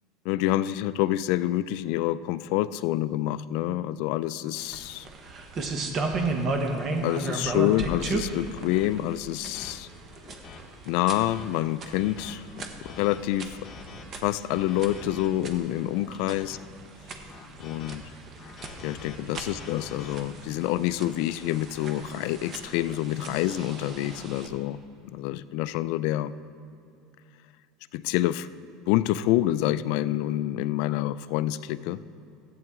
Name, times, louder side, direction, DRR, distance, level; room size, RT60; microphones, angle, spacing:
voice 1, 0.3-5.1 7.0-9.9 10.9-12.4 12.9-13.6 14.2-16.6 17.6-18.0 18.8-24.8 25.1-26.3 27.9-28.5 28.9-32.0, left 14 dB, 65° left, 16 dB, 0.3 m, -27 dB
sound 1, 4.6-24.5, right 3 dB, 35° right, 1.0 m, -35 dB
sound 2, 6.9-7.1 7.8-8.0 8.7-8.9 9.5-9.7 10.2-10.6 11.1-11.5 12.0-12.3 12.8-13.2 13.6-14.0 14.5-15.3 15.9-16.6 17.3-18.0 18.4-20.2, left 4 dB, 30° left, 1.1 m, -45 dB
14.0 x 8.7 x 3.6 m, 2.7 s
supercardioid pair, 140°, 0 cm